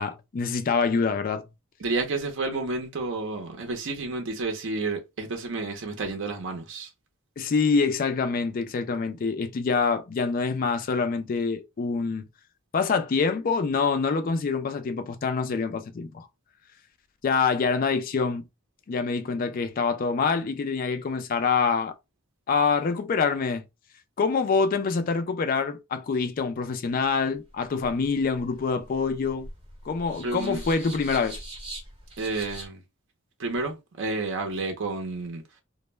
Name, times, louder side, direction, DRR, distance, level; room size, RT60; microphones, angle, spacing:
voice 1, 0.0-1.4 7.4-12.2 12.7-16.3 17.2-18.4 18.9-21.9 22.5-23.6 24.2-29.5 29.9-31.4, left 5 dB, 40° left, 0.3 m, -26 dB
voice 2, 1.8-6.9 30.2-30.6 32.2-32.8 33.4-35.4, right 3 dB, 60° right, 0.6 m, -30 dB
sound 1, 27.4-32.7, right 1 dB, 25° right, 1.0 m, -42 dB
2.1 x 2.0 x 3.1 m
head